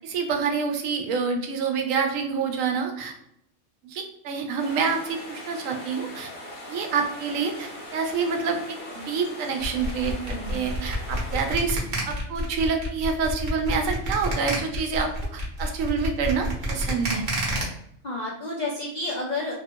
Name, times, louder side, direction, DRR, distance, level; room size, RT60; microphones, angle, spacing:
voice 1, 0.0-3.1 3.8-6.3 6.7-11.8 12.1-17.2, right 5 dB, 85° right, 4 dB, 1.0 m, -27 dB
sound 1, 4.6-11.5, left 1 dB, 45° left, 0.8 m, -40 dB
sound 2, 9.6-17.6, right 1 dB, 45° right, 0.8 m, -29 dB
voice 2, 10.3-10.7 18.0-19.5, left 2 dB, 70° left, -3 dB, 0.4 m, -31 dB
2.8 x 2.3 x 2.7 m, 0.73 s
omnidirectional pair, 1.3 m